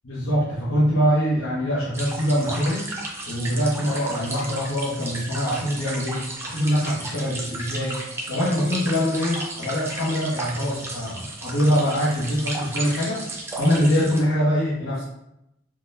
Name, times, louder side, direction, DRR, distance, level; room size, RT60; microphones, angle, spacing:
voice 1, 0.0-2.9 3.3-13.3 13.6-15.0, equal, 90° left, -8 dB, 0.9 m, -23 dB
sound 1, 1.9-14.2, right 2 dB, 10° right, 0.4 m, -34 dB
3.6 x 2.2 x 2.6 m, 0.82 s
head